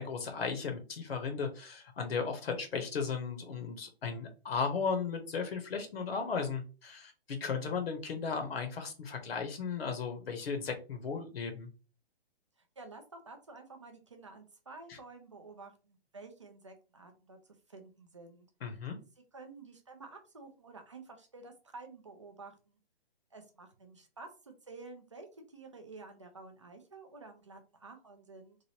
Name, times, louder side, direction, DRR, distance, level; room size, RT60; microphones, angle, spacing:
voice 1, 0.0-11.7 14.9-15.0 18.6-19.0, left 5 dB, 65° left, 5 dB, 0.9 m, -36 dB
voice 2, 12.6-17.4 17.7-18.5 19.3-22.8 23.3-28.6, right 3 dB, 30° right, 5 dB, 0.4 m, -51 dB
3.0 x 2.4 x 2.8 m, 0.33 s
hypercardioid pair, 170°, 32 cm